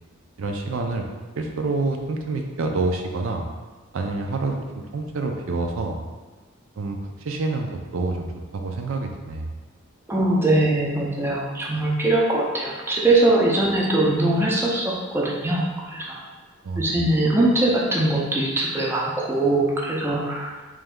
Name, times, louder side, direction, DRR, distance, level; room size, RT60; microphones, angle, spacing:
voice 1, 0.4-1.1 1.4-3.4 3.9-6.0 6.8-8.3 8.5-9.5 16.6-17.0, right 3 dB, 70° right, 3 dB, 0.4 m, -27 dB
voice 2, 10.1-16.2 16.8-20.5, right 2 dB, 10° right, -3 dB, 0.5 m, -21 dB
3.3 x 3.0 x 3.6 m, 1.4 s
head